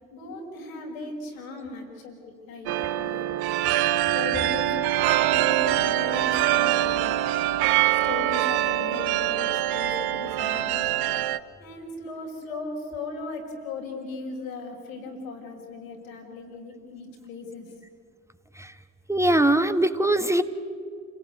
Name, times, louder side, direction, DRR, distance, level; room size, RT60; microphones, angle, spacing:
voice 1, 0.1-3.3 4.1-4.7 5.0-7.2 7.9-10.9 11.6-17.7, left 3 dB, 85° left, 0 dB, 5.0 m, -37 dB
sound 1, 2.7-11.4, right 13 dB, 65° right, 1.0 m, -24 dB
voice 2, 19.1-20.4, right 1 dB, 5° right, 9 dB, 1.5 m, -21 dB
29.0 x 16.5 x 9.3 m, 2.3 s
hypercardioid pair, 45°, 40 cm